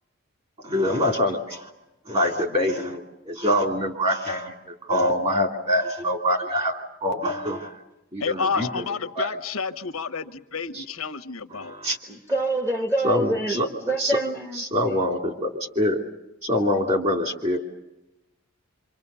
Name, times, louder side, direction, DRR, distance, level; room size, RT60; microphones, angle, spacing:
voice 1, 0.6-1.7 2.1-7.7 8.1-8.8 9.1-9.3 10.7-10.8 11.5-12.0 13.0-13.7 14.0-14.1 14.6-16.0 16.4-17.6, left 1 dB, 30° right, 4 dB, 2.8 m, -25 dB
voice 2, 8.2-11.7, left 5 dB, 85° left, 10 dB, 1.0 m, -30 dB
voice 3, 12.1-15.0, right 1 dB, 15° right, 5 dB, 1.2 m, -26 dB
26.5 x 25.5 x 6.9 m, 0.99 s
head